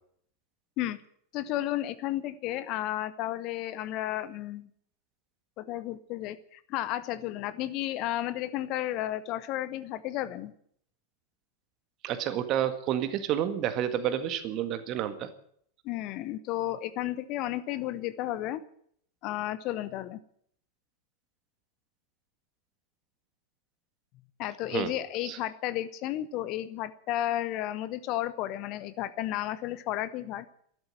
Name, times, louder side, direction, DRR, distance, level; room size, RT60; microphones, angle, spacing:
voice 1, 1.3-4.7 5.6-10.5 15.8-18.6 19.2-20.2 24.4-30.4, left 14 dB, 40° left, 14 dB, 0.9 m, -33 dB
voice 2, 12.0-15.3 24.7-24.9 25.2-25.4, right 10 dB, 35° right, 11 dB, 1.7 m, -30 dB
13.0 x 11.5 x 9.5 m, 0.66 s
figure-of-eight pair, 90°, 0 cm